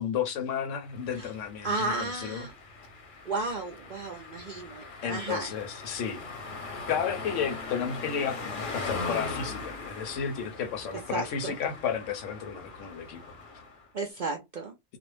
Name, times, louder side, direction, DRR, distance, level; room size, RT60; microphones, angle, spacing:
voice 1, 0.0-2.5 5.0-6.3 6.9-13.2, left 7 dB, 75° left, 1.0 m, -32 dB
sound 1, 0.9-13.9, left 3 dB, 50° left, 0.7 m, -40 dB
voice 2, 1.6-2.5 3.3-5.5 11.1-11.5 13.9-14.7, right 3 dB, 60° right, 0.5 m, -33 dB
2.5 x 2.0 x 3.1 m
omnidirectional pair, 1.3 m